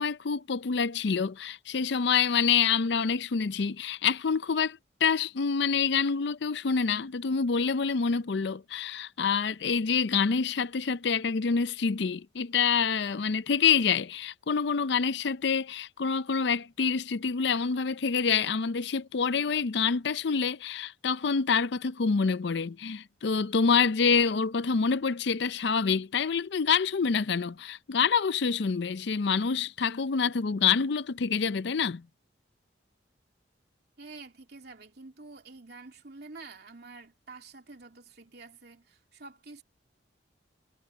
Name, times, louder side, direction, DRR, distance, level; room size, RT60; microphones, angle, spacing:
voice 1, 0.0-32.0, left 6 dB, 65° left, 0.5 m, -27 dB
voice 2, 34.0-39.6, right 3 dB, 55° right, 2.8 m, -48 dB
head